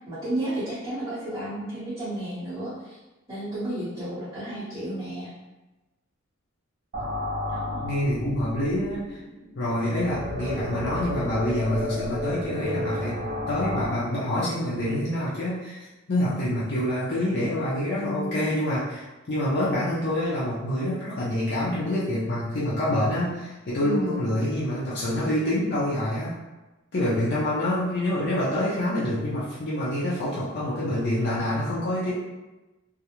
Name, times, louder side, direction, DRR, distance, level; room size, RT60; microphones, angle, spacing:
voice 1, 0.1-3.0 3.3-5.3 7.5-7.8 17.8-18.5 23.8-24.2, right 1 dB, 20° right, -14 dB, 0.8 m, -32 dB
sound 1, 6.9-13.9, left 1 dB, 45° right, 0.6 m, -32 dB
voice 2, 7.8-9.2 9.6-13.2 13.5-26.3 26.9-32.1, left 1 dB, 55° left, -9 dB, 0.5 m, -26 dB
2.4 x 2.0 x 2.8 m, 1.1 s
head